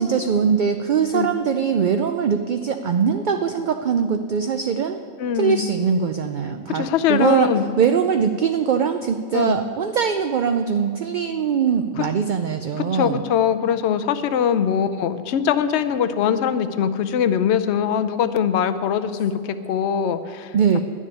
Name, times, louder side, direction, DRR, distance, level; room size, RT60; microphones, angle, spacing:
voice 1, 0.0-5.0 5.3-7.5 7.8-13.3 20.5-20.8, right 6 dB, 55° right, 7 dB, 0.5 m, -21 dB
voice 2, 5.2-5.7 6.7-7.6 9.3-9.6 12.0-12.1 12.4-20.8, left 8 dB, 65° left, 11 dB, 0.9 m, -22 dB
11.0 x 7.3 x 9.8 m, 2.3 s
omnidirectional pair, 1.3 m